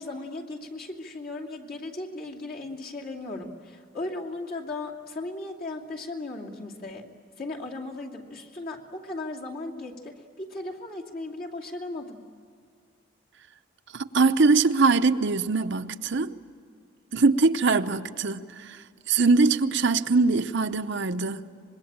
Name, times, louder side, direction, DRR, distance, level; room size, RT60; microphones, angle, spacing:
voice 1, 0.0-7.1 7.4-12.2, left 2 dB, 45° left, 2.7 m, -36 dB
voice 2, 13.9-16.3 17.1-21.5, right 4 dB, 60° right, 0.8 m, -22 dB
25.5 x 21.5 x 8.8 m
head